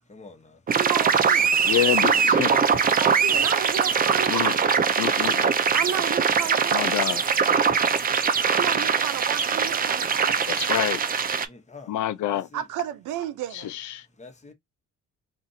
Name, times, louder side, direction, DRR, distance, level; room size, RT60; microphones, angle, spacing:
voice 1, 0.1-0.6 2.1-2.4 11.5-11.9 12.3-12.7 14.2-14.5, left 3 dB, 25° left, 1.0 m, -46 dB
sound 1, 0.7-11.5, right 6 dB, 30° right, 0.5 m, -22 dB
voice 2, 0.7-1.5 3.0-4.7 5.7-6.9 8.5-10.8 12.5-13.8, right 10 dB, 80° right, 0.6 m, -32 dB
voice 3, 1.7-2.6 4.3-4.5 5.0-5.6 6.7-7.2 10.5-11.0 11.9-12.5 13.5-14.0, left 13 dB, 75° left, 0.5 m, -27 dB
2.5 x 2.5 x 4.0 m
cardioid pair, 90°, 30 cm